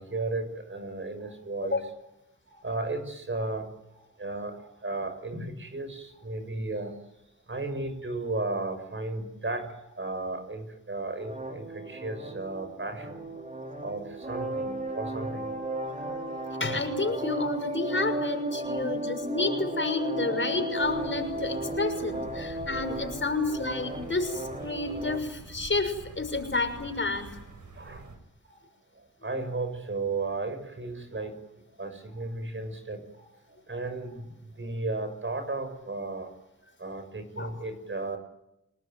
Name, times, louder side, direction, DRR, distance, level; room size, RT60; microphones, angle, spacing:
voice 1, 0.0-1.9 2.5-7.0 7.5-13.2 13.8-15.5 16.1-16.2 18.5-18.8 20.1-20.2 22.3-22.4 26.4-26.5 27.7-28.1 28.4-28.6 29.2-31.4 31.8-33.3 33.7-34.2 34.6-36.3 36.8-38.2, right 2 dB, 40° right, 7 dB, 6.6 m, -34 dB
sound 1, 11.2-25.2, right 1 dB, 25° right, 4.4 m, -35 dB
voice 2, 16.6-27.4 37.4-37.5, left 3 dB, 40° left, 6 dB, 6.2 m, -30 dB
sound 2, 20.8-28.2, right 3 dB, 70° right, 6.5 m, -46 dB
30.0 x 20.0 x 9.3 m, 0.89 s
cardioid pair, 65°, 30 cm